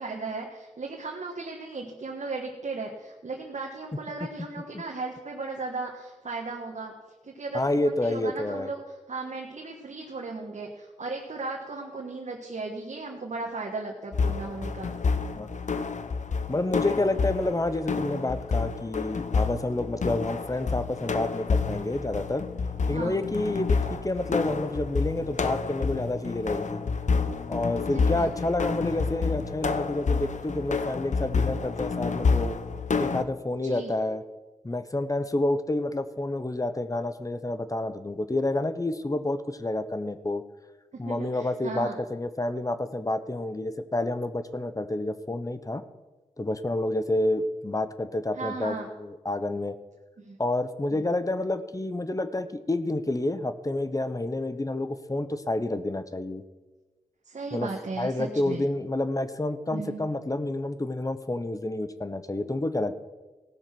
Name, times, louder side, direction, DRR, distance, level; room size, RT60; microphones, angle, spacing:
voice 1, 0.0-6.9 7.2-8.8 9.1-14.9 22.9-23.2 27.9-28.3 33.6-33.9 41.0-42.0 48.4-48.9 50.2-50.4 50.9-51.1 57.2-58.6 59.7-60.0, right 3 dB, 65° right, 0 dB, 1.4 m, -36 dB
voice 2, 7.5-8.7 15.4-15.5 16.5-22.4 22.9-26.8 27.5-32.6 33.0-34.2 34.6-40.4 41.0-45.8 46.4-49.8 50.4-56.4 57.5-57.7 58.0-63.0, left 2 dB, 25° left, 12 dB, 0.9 m, -29 dB
sound 1, 14.1-33.2, left 4 dB, 70° left, 0.8 m, -29 dB
17.0 x 6.4 x 5.9 m, 1.2 s
cardioid pair, 45°, 13 cm